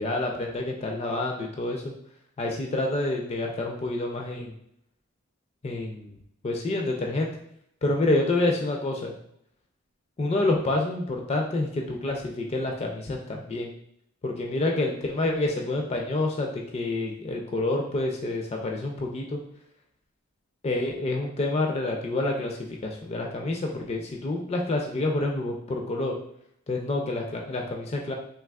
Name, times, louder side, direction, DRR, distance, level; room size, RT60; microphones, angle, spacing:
voice 1, 0.0-1.8 2.4-4.5 5.6-6.2 6.4-7.3 7.8-9.1 10.2-13.7 14.2-19.4 20.6-26.1 26.7-28.1, left 2 dB, 30° left, 1 dB, 0.3 m, -28 dB
3.5 x 2.7 x 2.3 m, 0.74 s
head